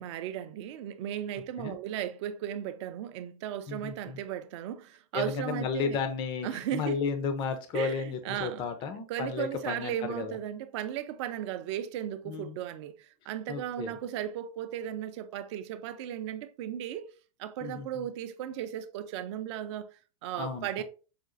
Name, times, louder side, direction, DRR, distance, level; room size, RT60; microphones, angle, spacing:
voice 1, 0.0-6.0 6.4-7.3 7.7-8.7 9.1-17.1 17.4-20.8, right 10 dB, 55° right, 0.5 m, -36 dB
voice 2, 3.7-4.2 5.1-10.4 12.2-12.6 13.5-14.0 17.6-18.1 20.4-20.8, left 5 dB, 25° left, 0.4 m, -33 dB
4.9 x 2.4 x 2.4 m
supercardioid pair, 140°, 18 cm